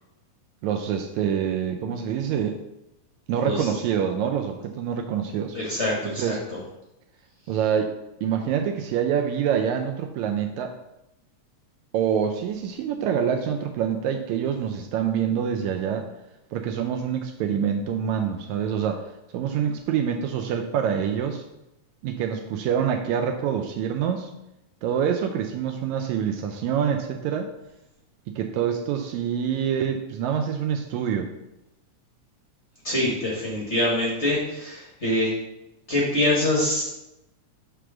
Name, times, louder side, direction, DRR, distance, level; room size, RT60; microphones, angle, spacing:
voice 1, 0.6-2.6 3.3-5.6 6.0-6.4 7.5-8.0 8.2-10.8 11.9-16.1 16.5-21.4 22.0-24.3 24.8-27.5 28.3-31.3, right 8 dB, 80° right, 4 dB, 1.8 m, -26 dB
voice 2, 3.4-3.7 5.5-6.4 32.8-35.3 35.9-36.8, left 1 dB, 60° left, -5 dB, 0.7 m, -24 dB
6.1 x 3.4 x 6.0 m, 0.91 s
omnidirectional pair, 3.4 m